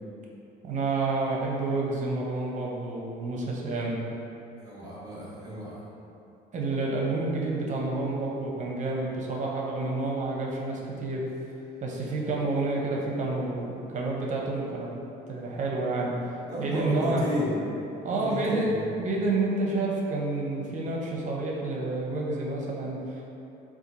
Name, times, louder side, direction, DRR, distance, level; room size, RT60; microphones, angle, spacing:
voice 1, 0.6-4.0 6.5-11.2 11.8-14.9 15.3-16.1 16.6-17.3 18.0-18.7 19.0-23.3, right 2 dB, 45° right, -2 dB, 0.7 m, -29 dB
voice 2, 4.6-5.8 16.5-17.6 18.1-18.6, equal, 20° right, -6 dB, 1.2 m, -33 dB
4.3 x 2.4 x 4.0 m, 2.8 s
cardioid pair, 110°, 17 cm